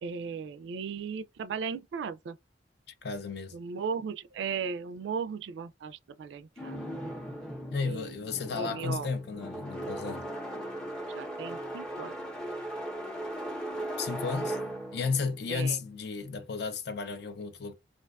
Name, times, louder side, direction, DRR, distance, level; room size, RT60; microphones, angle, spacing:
voice 1, 0.0-2.4 3.5-6.8 7.8-8.2 8.5-9.1 11.1-12.1 15.5-15.8, right 6 dB, 75° right, 0.3 m, -36 dB
voice 2, 3.0-3.6 7.7-10.3 14.0-14.6 14.9-17.7, left 5 dB, 60° left, 0.5 m, -33 dB
sound 1, 6.6-16.5, right 1 dB, 5° left, 0.6 m, -38 dB
2.4 x 2.3 x 2.3 m
head